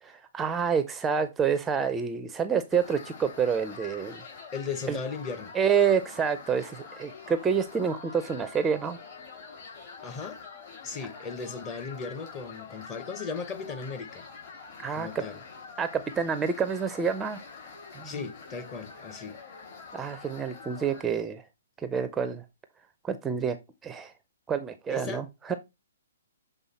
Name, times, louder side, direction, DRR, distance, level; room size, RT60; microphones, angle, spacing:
voice 1, 0.0-4.2 4.9-5.0 5.5-9.0 14.8-15.2 15.8-17.4 17.9-18.1 19.9-21.5 21.8-22.5 23.0-23.6 23.8-24.1 24.5-25.5, right 6 dB, 10° right, 0.5 m, -28 dB
sound 1, 2.7-21.0, left 5 dB, 50° left, 3.5 m, -46 dB
voice 2, 4.5-5.5 10.0-10.4 10.8-14.2 14.9-15.4 18.0-19.4 24.9-25.2, left 5 dB, 25° left, 0.9 m, -36 dB
7.1 x 3.5 x 4.1 m
hypercardioid pair, 140°, 0 cm